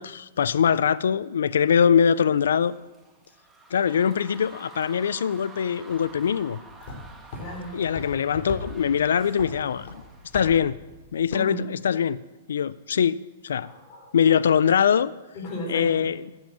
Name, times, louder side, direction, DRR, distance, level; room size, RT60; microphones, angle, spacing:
voice 1, 0.0-2.7 3.7-6.6 7.7-9.9 10.3-10.7 11.1-12.2 12.5-13.7 14.1-15.1 15.7-16.2, left 7 dB, 80° left, 18 dB, 0.3 m, -22 dB
sound 1, 2.1-10.3, right 2 dB, 5° right, 1.7 m, -49 dB
sound 2, 5.9-11.1, left 2 dB, 55° left, 3.9 m, -41 dB
voice 2, 7.4-7.7 11.3-11.6 13.6-14.4 15.3-16.1, left 1 dB, 35° left, 0 dB, 4.5 m, -36 dB
12.0 x 7.4 x 7.5 m, 1.2 s
hypercardioid pair, 135°, 0 cm